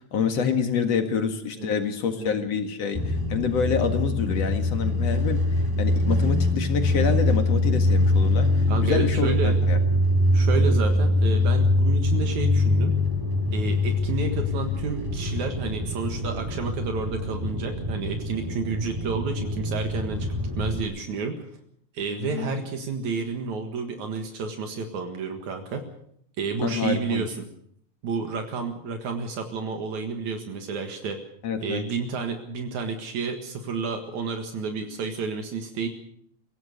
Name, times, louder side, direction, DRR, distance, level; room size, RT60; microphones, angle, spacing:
voice 1, 0.1-5.4 5.8-9.8 22.2-22.5 26.6-27.3 31.4-31.8, left 6 dB, 60° left, 6 dB, 2.8 m, -27 dB
sound 1, 2.9-20.8, left 1 dB, 5° right, 3.2 m, -23 dB
voice 2, 8.7-9.6 10.3-12.9 13.5-20.3 20.6-21.4 21.9-25.8 26.4-27.5 28.0-31.2 31.6-35.9, right 4 dB, 75° right, 5 dB, 3.1 m, -30 dB
24.0 x 16.5 x 6.6 m, 0.68 s
omnidirectional pair, 3.4 m